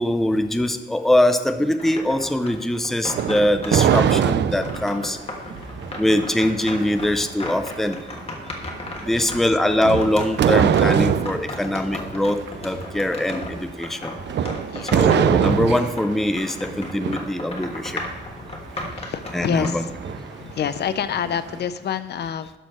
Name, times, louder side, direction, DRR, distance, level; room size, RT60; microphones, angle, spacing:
voice 1, 0.0-5.2 6.0-8.0 9.0-14.1 14.9-18.0 19.3-19.9, left 1 dB, ahead, 8 dB, 0.4 m, -22 dB
sound 1, 1.8-4.2 4.6-16.1 16.4-19.7, left 2 dB, 35° left, 1.4 m, -35 dB
sound 2, 3.1-4.9 9.8-11.4 14.3-16.0, right 9 dB, 70° right, 0.4 m, -20 dB
sound 3, 4.5-21.6, right 5 dB, 90° right, 1.1 m, -40 dB
voice 2, 14.7-15.1 19.0-19.9 20.3-22.5, left 8 dB, 65° left, 12 dB, 0.5 m, -28 dB
12.0 x 4.4 x 5.9 m, 1.2 s
wide cardioid pair, 160°, 18 cm